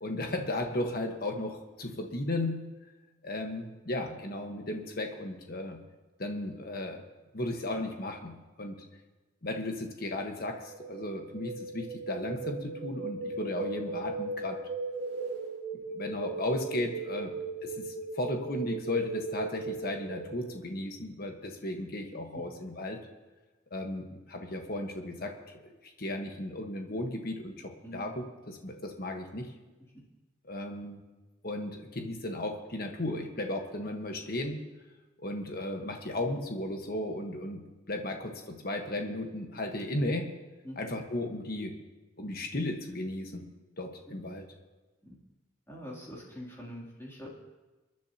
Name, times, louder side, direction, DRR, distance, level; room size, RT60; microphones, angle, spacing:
voice 1, 0.0-2.6 3.2-5.8 6.2-7.0 7.3-8.3 8.6-8.8 9.4-14.6 15.7-17.3 17.6-23.0 23.7-29.5 30.4-31.0 31.4-34.6 35.2-37.6 37.9-40.3 40.8-41.7 42.2-43.4 43.8-44.4, left 1 dB, 50° left, 3 dB, 1.3 m, -35 dB
sound 1, 10.6-20.5, right 3 dB, 55° right, 2.3 m, -38 dB
voice 2, 45.7-47.3, equal, 15° left, -4 dB, 2.9 m, -44 dB
29.0 x 10.5 x 2.9 m, 1.2 s
head